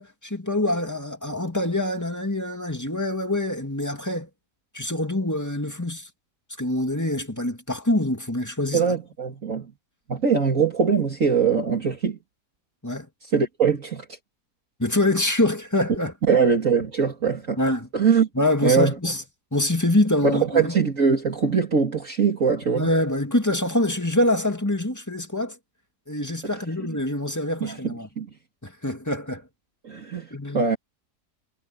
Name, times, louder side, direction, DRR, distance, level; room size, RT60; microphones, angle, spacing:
voice 1, 0.0-4.3 4.7-6.1 6.6-8.9 12.8-13.1 14.8-16.1 17.6-17.9 18.3-19.2 19.5-20.8 22.7-25.6 26.1-28.1 28.6-29.5 30.3-30.7, left 1 dB, 10° left, 2.1 m, -25 dB
voice 2, 8.7-9.7 10.1-12.2 13.3-14.2 16.3-17.6 17.9-18.3 18.6-18.9 20.2-22.9 27.6-28.3 29.8-30.8, right 6 dB, 50° right, 2.7 m, -22 dB
omnidirectional pair, 1.8 m